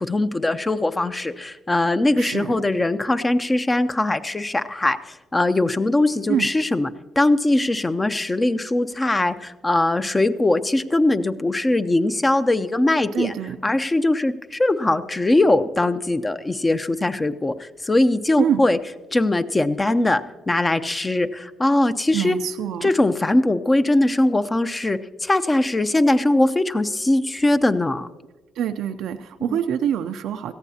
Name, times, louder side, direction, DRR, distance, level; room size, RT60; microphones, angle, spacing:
voice 1, 0.0-6.9 7.2-13.3 13.6-18.8 19.1-22.4 22.8-28.1 29.5-29.6, left 2 dB, 20° left, 11 dB, 0.7 m, -21 dB
voice 2, 2.2-2.5 6.3-6.5 13.1-13.6 18.4-18.6 22.1-22.9 28.6-30.5, right 9 dB, 80° right, 8 dB, 0.5 m, -25 dB
17.5 x 14.5 x 2.8 m, 1.2 s
cardioid pair, 80°, 0 cm